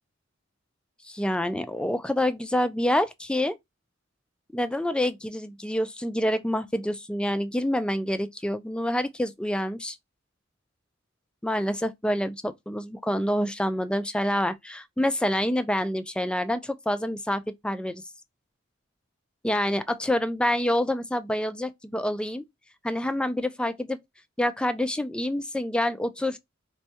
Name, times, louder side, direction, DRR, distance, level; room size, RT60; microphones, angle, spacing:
voice 1, 1.0-3.6 4.5-10.0 11.4-18.0 19.4-22.4 22.8-24.0 24.4-26.4, left 1 dB, 5° left, 0.3 m, -27 dB
4.3 x 2.2 x 2.7 m
head